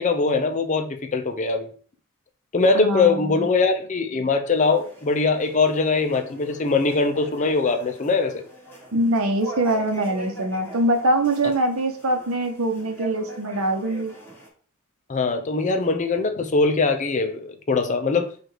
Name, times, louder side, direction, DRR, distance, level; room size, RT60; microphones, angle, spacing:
voice 1, 0.0-1.7 2.5-8.4 15.1-18.4, left 4 dB, 35° left, 0.5 m, -22 dB
voice 2, 2.7-3.5 8.9-14.1, right 1 dB, 75° right, 0.8 m, -23 dB
sound 1, 4.6-14.5, right 1 dB, 10° left, 1.3 m, -42 dB
4.6 x 2.5 x 4.7 m
head